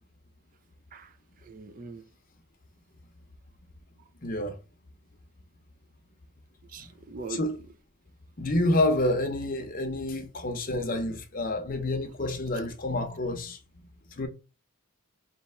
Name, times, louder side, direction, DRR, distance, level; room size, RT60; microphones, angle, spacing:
voice 1, 1.4-2.0 6.7-7.4, right 4 dB, 40° right, 0.4 m, -41 dB
voice 2, 4.2-4.6 7.3-7.6 8.4-13.6 14.1-14.3, left 1 dB, 40° left, 0.7 m, -28 dB
3.3 x 3.0 x 4.3 m
head